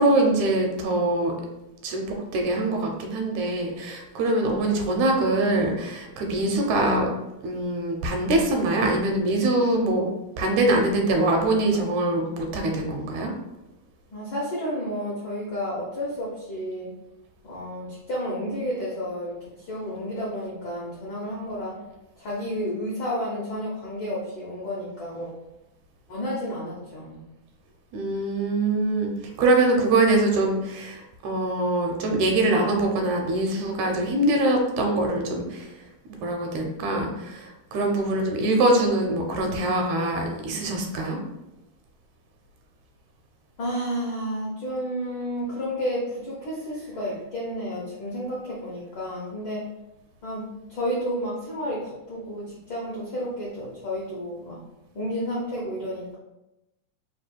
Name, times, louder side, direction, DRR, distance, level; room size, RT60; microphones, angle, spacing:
voice 1, 0.0-1.3 1.8-7.1 7.4-10.1 10.4-13.3 27.9-29.1 29.4-35.7 36.1-41.2, right 2 dB, 80° right, 2 dB, 1.9 m, -23 dB
voice 2, 14.1-16.9 17.4-21.8 22.2-25.3 26.1-27.2 43.6-49.7 50.2-54.6 54.9-56.2, equal, 75° left, -6 dB, 1.1 m, -31 dB
4.8 x 2.3 x 4.3 m, 0.95 s
omnidirectional pair, 3.6 m